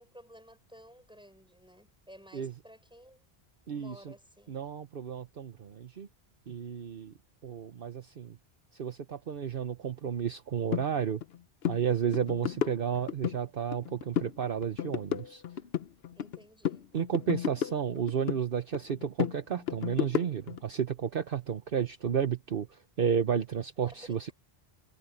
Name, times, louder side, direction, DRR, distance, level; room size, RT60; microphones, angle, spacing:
voice 1, 0.0-3.3 3.7-4.5 16.2-16.9 23.9-24.3, equal, 5° right, 5.8 m, -54 dB
voice 2, 3.7-4.1 4.5-6.1 6.5-7.1 7.4-8.4 8.7-11.2 11.7-15.4 16.9-24.3, right 8 dB, 60° right, 1.1 m, -32 dB
sound 1, 10.7-10.9 11.2-11.4 11.6-11.8 12.1-13.4 13.7-14.4 14.6-16.4 16.6-18.4 18.7-20.6, left 10 dB, 70° left, 0.9 m, -32 dB
omnidirectional pair, 1.1 m